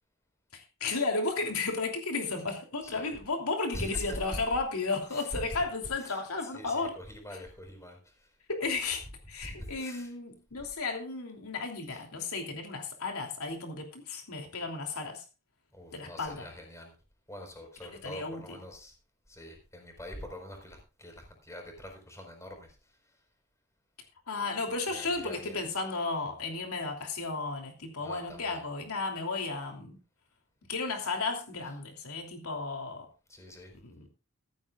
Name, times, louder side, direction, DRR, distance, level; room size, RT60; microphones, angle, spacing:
voice 1, 0.5-6.9 7.3-7.4 8.5-9.0 9.3-15.2 15.9-16.5 18.0-18.6 24.3-30.0 30.7-33.1 33.7-34.1, left 3 dB, 85° left, 3 dB, 3.0 m, -34 dB
voice 2, 3.7-4.4 5.1-5.4 6.4-8.1 9.4-10.1 11.9-12.0 15.7-16.9 17.3-18.9 19.3-22.7 24.9-25.5 28.0-28.6 33.3-33.7, equal, 15° left, 3 dB, 4.6 m, -44 dB
15.0 x 14.5 x 2.4 m, 0.33 s
head